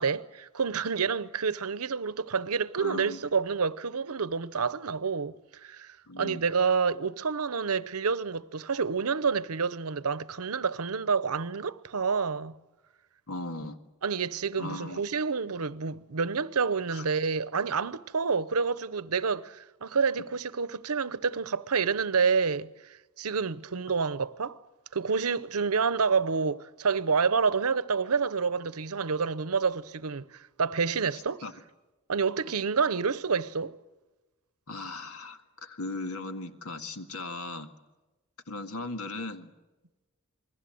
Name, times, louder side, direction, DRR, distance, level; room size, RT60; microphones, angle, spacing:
voice 1, 0.0-12.5 14.0-24.6 24.9-31.4 32.1-33.7, right 5 dB, 85° right, 0.9 m, -28 dB
voice 2, 2.8-3.2 6.1-6.4 13.3-13.8 14.6-15.0 16.9-17.0 31.4-31.5 34.7-37.7 38.5-39.5, left 2 dB, 80° left, 1.9 m, -37 dB
28.5 x 21.0 x 7.8 m
head